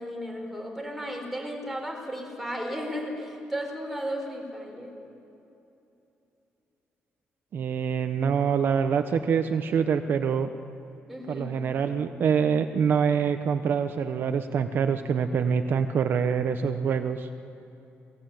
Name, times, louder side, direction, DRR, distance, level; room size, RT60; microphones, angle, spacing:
voice 1, 0.0-5.0 11.1-11.5, equal, ahead, 1 dB, 4.7 m, -34 dB
voice 2, 7.5-10.5 11.3-17.3, right 6 dB, 55° right, 8 dB, 1.0 m, -25 dB
28.0 x 19.0 x 9.3 m, 2.9 s
cardioid pair, 155°, 4 cm